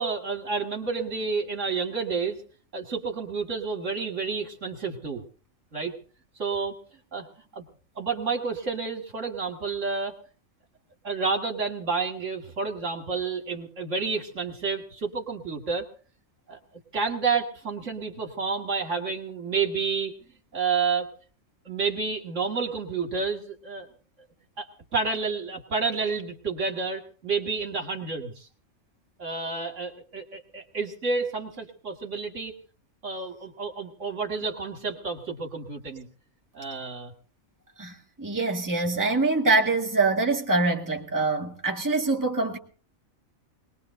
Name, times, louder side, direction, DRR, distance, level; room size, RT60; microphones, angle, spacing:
voice 1, 0.0-2.4 2.7-5.2 5.7-5.9 6.4-6.8 7.1-7.3 7.5-7.7 8.0-10.2 11.0-15.9 16.5-16.6 16.9-20.1 20.5-21.1 21.6-23.9 24.6-28.5 29.2-32.5 33.0-36.1 36.5-37.1, right 4 dB, 65° right, 2.5 m, -30 dB
voice 2, 37.8-42.6, right 3 dB, 15° right, 2.1 m, -24 dB
21.5 x 20.5 x 2.7 m
omnidirectional pair, 1.4 m